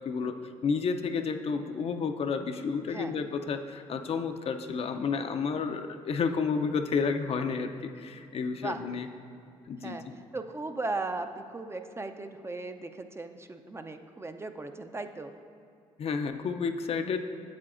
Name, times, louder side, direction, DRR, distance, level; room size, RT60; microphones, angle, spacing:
voice 1, 0.1-0.4 0.6-9.1 9.6-10.0 16.0-17.2, left 5 dB, 50° left, 7 dB, 0.5 m, -31 dB
voice 2, 10.3-15.3, right 3 dB, 20° right, 7 dB, 0.4 m, -37 dB
8.5 x 7.5 x 2.5 m, 2.5 s
supercardioid pair, 65°, 13 cm